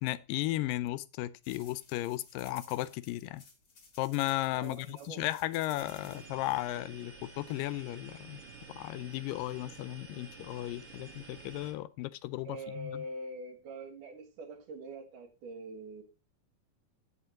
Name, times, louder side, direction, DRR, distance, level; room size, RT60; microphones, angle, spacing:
voice 1, 0.0-3.4 4.0-8.4 8.7-13.1, left 16 dB, 90° left, 2.3 m, -35 dB
sound 1, 1.4-6.2, left 4 dB, 35° left, 2.1 m, -56 dB
voice 2, 4.5-5.3 12.4-16.0, right 1 dB, 70° right, 3.1 m, -44 dB
sound 2, 5.8-11.7, right 4 dB, 45° right, 2.7 m, -51 dB
16.5 x 5.6 x 2.9 m
omnidirectional pair, 3.8 m